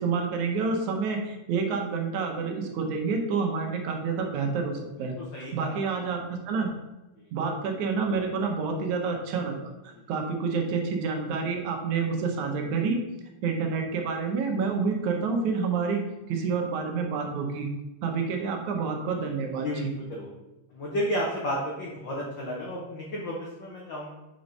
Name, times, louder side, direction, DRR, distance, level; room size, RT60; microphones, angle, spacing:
voice 1, 0.0-5.1 5.5-6.7 7.3-13.0 13.4-16.0 16.3-17.7 18.0-19.9, right 5 dB, 75° right, 3 dB, 2.2 m, -28 dB
voice 2, 5.0-5.8 19.6-20.3 20.7-24.1, equal, 80° left, -3 dB, 1.0 m, -32 dB
5.2 x 4.6 x 5.3 m, 1.0 s
omnidirectional pair, 3.6 m